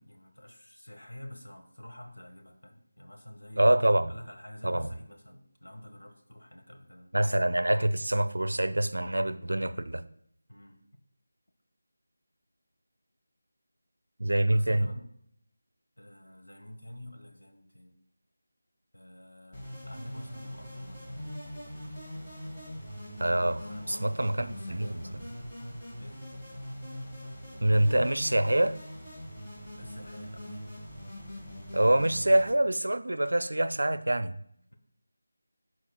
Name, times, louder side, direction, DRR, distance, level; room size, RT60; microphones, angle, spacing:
voice 1, 0.0-3.7 4.1-7.1 10.5-10.8 14.5-15.2 16.0-18.0 18.9-21.3 23.6-25.3 26.0-26.3 29.7-30.5, left 1 dB, 80° left, 3 dB, 1.3 m, -47 dB
voice 2, 3.6-4.1 4.6-4.9 7.1-10.0 14.2-14.9 23.2-23.6 23.9-25.0 27.6-28.7 31.7-34.4, right 1 dB, 65° right, 12 dB, 0.4 m, -25 dB
sound 1, 19.5-32.5, equal, 15° left, 1.5 m, -42 dB
11.5 x 4.2 x 2.3 m, 0.70 s
figure-of-eight pair, 165°, 0 cm